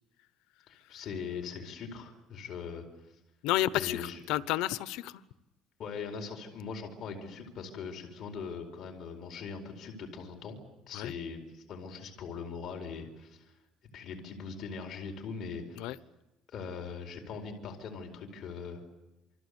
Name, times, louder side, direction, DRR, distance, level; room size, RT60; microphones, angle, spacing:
voice 1, 0.7-2.8 3.7-4.2 5.8-10.6 10.9-13.5 13.9-15.9 16.5-18.8, left 5 dB, 40° left, 2 dB, 4.6 m, -41 dB
voice 2, 3.4-5.2 10.9-11.1 15.8-16.0, left 15 dB, 85° left, 16 dB, 1.0 m, -31 dB
28.0 x 25.5 x 8.3 m, 0.98 s
cardioid pair, 180°, 0 cm